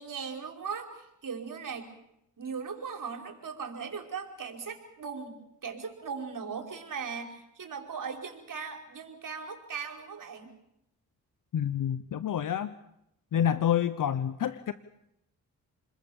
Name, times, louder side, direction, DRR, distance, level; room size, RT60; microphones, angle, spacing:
voice 1, 0.0-1.9 2.4-5.3 5.6-10.5, right 6 dB, 65° right, 3 dB, 5.1 m, -38 dB
voice 2, 11.5-12.7 13.3-14.7, left 9 dB, 65° left, 14 dB, 1.0 m, -28 dB
28.5 x 21.5 x 7.2 m, 0.81 s
cardioid pair, 55°, 34 cm